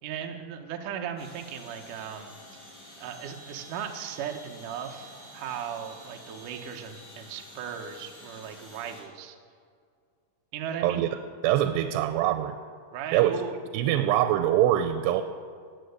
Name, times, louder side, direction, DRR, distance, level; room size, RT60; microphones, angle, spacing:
voice 1, 0.0-9.4 10.5-11.1 12.9-13.5, right 8 dB, 65° right, 3 dB, 2.2 m, -37 dB
sound 1, 1.2-9.0, equal, 25° left, 5.6 m, -49 dB
voice 2, 11.4-12.6 13.1-13.5 13.7-15.2, right 12 dB, 90° right, 8 dB, 2.8 m, -24 dB
18.5 x 7.7 x 8.0 m, 2.2 s
omnidirectional pair, 4.8 m